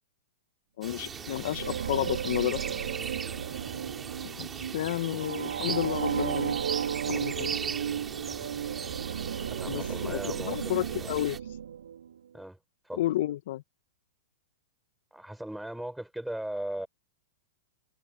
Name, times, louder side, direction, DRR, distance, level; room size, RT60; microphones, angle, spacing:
voice 1, 0.8-2.6 4.4-4.5 4.7-6.6 7.1-7.5 9.7-10.2 10.5-11.4 13.0-13.6, left 14 dB, 65° left, 1.6 m, -31 dB
sound 1, 0.8-11.4, right 6 dB, 20° right, 6.8 m, -39 dB
sound 2, 1.0-12.2, right 8 dB, 80° right, 4.2 m, -34 dB
voice 2, 9.4-11.2 12.3-12.6 12.8-13.0 15.1-16.9, right 1 dB, 5° right, 5.9 m, -38 dB
hypercardioid pair, 110°, 0 cm